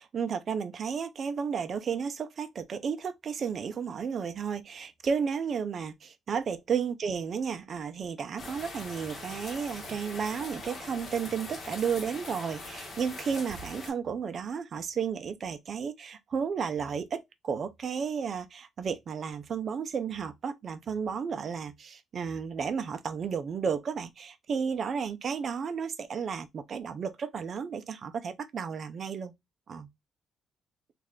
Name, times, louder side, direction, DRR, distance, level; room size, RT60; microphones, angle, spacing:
voice 1, 0.0-29.3 29.7-29.9, right 6 dB, 50° right, 0.5 m, -33 dB
sound 1, 8.4-13.9, left 2 dB, 45° left, 1.5 m, -42 dB
3.2 x 2.5 x 3.6 m
cardioid pair, 90°, 0 cm